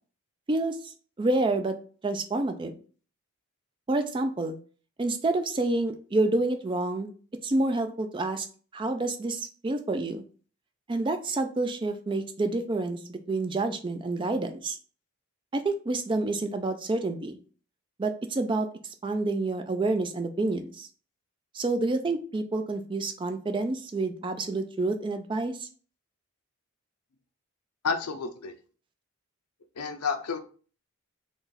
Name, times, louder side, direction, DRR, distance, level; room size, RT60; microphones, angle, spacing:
voice 1, 0.5-1.7 2.0-2.7 3.9-4.6 5.0-7.1 7.4-8.5 8.7-10.2 10.9-14.8 15.5-17.4 18.0-18.7 19.0-20.9 21.5-25.7, right 2 dB, 20° right, 8 dB, 0.3 m, -28 dB
voice 2, 27.8-28.5 29.8-30.4, left 5 dB, 90° left, 6 dB, 0.5 m, -30 dB
3.9 x 2.3 x 3.9 m, 0.41 s
head